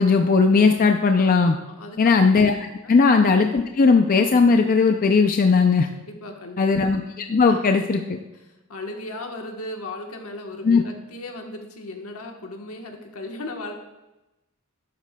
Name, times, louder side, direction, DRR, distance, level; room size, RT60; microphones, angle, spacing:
voice 1, 0.0-1.6 2.0-5.9 6.6-8.2 10.6-10.8, left 4 dB, 40° left, 5 dB, 0.4 m, -18 dB
voice 2, 1.7-2.1 2.8-3.0 6.0-6.6 7.5-7.6 8.5-13.7, left 2 dB, 75° left, 3 dB, 1.2 m, -36 dB
11.5 x 8.3 x 2.2 m, 0.99 s
head